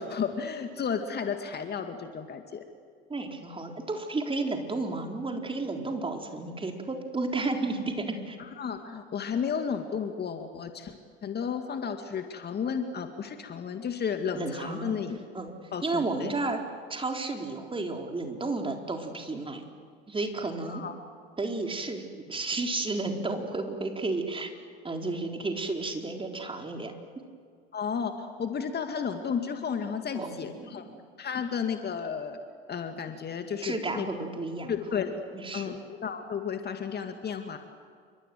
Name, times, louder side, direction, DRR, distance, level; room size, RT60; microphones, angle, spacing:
voice 1, 0.0-2.6 8.6-11.0 11.2-15.2 15.7-16.3 20.7-20.9 27.7-30.8 31.2-32.4 32.7-34.1 34.7-35.2 35.5-37.6, left 6 dB, 30° left, 6 dB, 2.2 m, -33 dB
voice 2, 3.1-8.4 14.3-15.0 15.3-15.6 15.8-16.6 16.9-19.6 20.1-20.8 21.4-24.5 24.8-26.9 30.1-31.0 33.6-34.7 35.3-35.7, right 3 dB, 15° right, 3 dB, 4.1 m, -32 dB
29.0 x 25.0 x 7.9 m, 2.1 s
hypercardioid pair, 75°, 32 cm